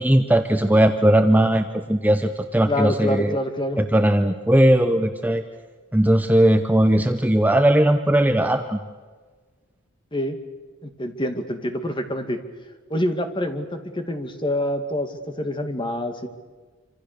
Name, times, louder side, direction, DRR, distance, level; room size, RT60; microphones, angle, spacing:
voice 1, 0.0-3.3 3.8-5.4 5.9-8.8, right 1 dB, 10° right, 7 dB, 0.8 m, -18 dB
voice 2, 2.7-3.8 10.1-10.4 10.8-12.4 12.9-16.3, left 1 dB, 25° left, 6 dB, 2.2 m, -26 dB
26.5 x 26.0 x 6.8 m, 1.4 s
head